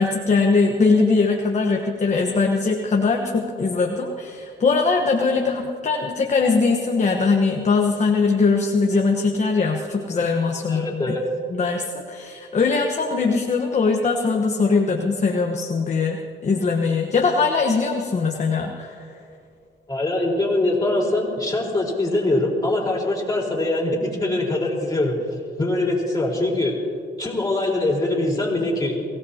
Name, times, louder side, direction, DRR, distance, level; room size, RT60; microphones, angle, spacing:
voice 1, 0.0-11.2 11.5-19.1, left 4 dB, 35° left, 1 dB, 1.2 m, -21 dB
voice 2, 10.7-11.2 19.9-25.2 25.6-26.8 27.2-29.0, left 2 dB, 20° left, -3 dB, 4.4 m, -23 dB
23.0 x 17.0 x 2.9 m, 2.4 s
cardioid pair, 90°, 20 cm